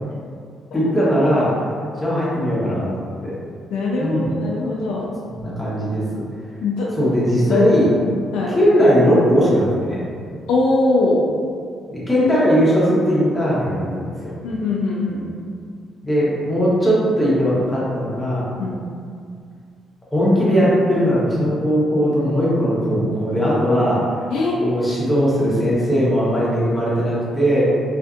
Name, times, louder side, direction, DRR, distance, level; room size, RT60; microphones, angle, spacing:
voice 1, 0.7-1.5 2.0-3.3 4.0-4.3 5.2-6.2 6.9-7.9 8.5-10.0 11.9-14.3 16.0-18.5 20.1-24.0 24.6-27.6, equal, 15° left, -9 dB, 0.9 m, -19 dB
voice 2, 3.7-5.1 6.6-6.9 7.5-7.7 8.3-8.6 10.5-11.2 14.4-15.3 18.6-18.8 24.3-24.6, left 2 dB, 85° left, -4 dB, 0.4 m, -21 dB
2.5 x 2.5 x 2.4 m, 2.2 s
cardioid pair, 90°, 0 cm